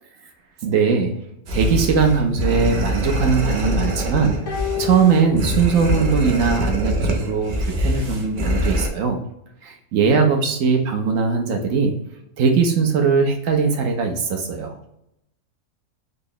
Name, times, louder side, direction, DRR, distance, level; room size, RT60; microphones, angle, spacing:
voice 1, 0.6-1.2 1.5-9.2 9.6-12.0 12.4-14.8, right 5 dB, 65° right, 4 dB, 0.9 m, -20 dB
sound 1, 1.5-8.9, equal, 90° right, 0.4 m, -24 dB
sound 2, 4.5-6.1 6.4-6.5, left 12 dB, 60° left, 0.9 m, -31 dB
3.7 x 2.0 x 3.7 m, 0.79 s
omnidirectional pair, 1.6 m